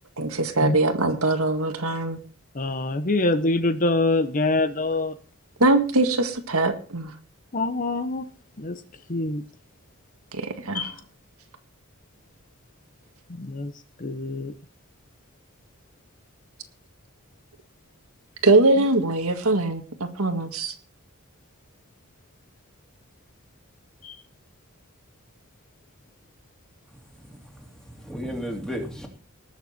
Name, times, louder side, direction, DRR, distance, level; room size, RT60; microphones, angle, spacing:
voice 1, 0.2-2.2 5.6-7.1 10.3-10.9 18.4-20.7, right 2 dB, 80° right, 6 dB, 1.8 m, -22 dB
voice 2, 2.6-5.1 7.5-8.3 8.6-8.8 9.1-9.4 10.7-10.9 13.4-13.7 14.0-14.5 24.0-24.1, left 2 dB, 40° left, 10 dB, 0.9 m, -24 dB
voice 3, 26.9-29.1, equal, 5° left, 1 dB, 2.9 m, -35 dB
19.5 x 7.3 x 4.4 m, 0.38 s
head